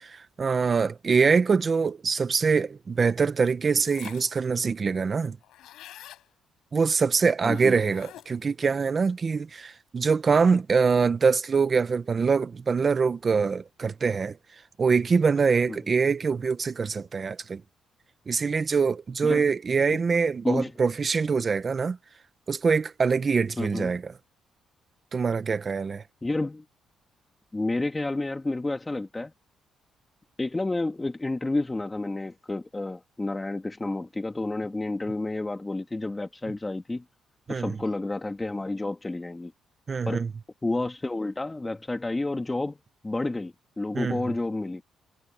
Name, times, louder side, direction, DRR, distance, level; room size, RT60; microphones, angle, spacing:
voice 1, 0.0-5.4 6.7-14.3 14.8-17.6 18.3-22.0 22.5-24.0 25.1-26.0 37.5-37.8 39.9-40.3 43.9-44.2, right 5 dB, 40° right, 1.5 m, -24 dB
sound 1, 3.9-4.4 4.8-4.9 5.1-6.3 7.5-8.5, left 13 dB, 85° left, 6.1 m, -46 dB
voice 2, 7.4-7.8 15.7-15.8 19.2-19.4 19.9-20.0 20.4-20.7 23.6-24.0 26.2-26.6 27.5-29.3 30.4-37.0 37.5-39.5 40.1-40.2 40.6-42.8 43.0-44.8, left 2 dB, 15° left, 2.4 m, -30 dB
cardioid pair, 90°, 0 cm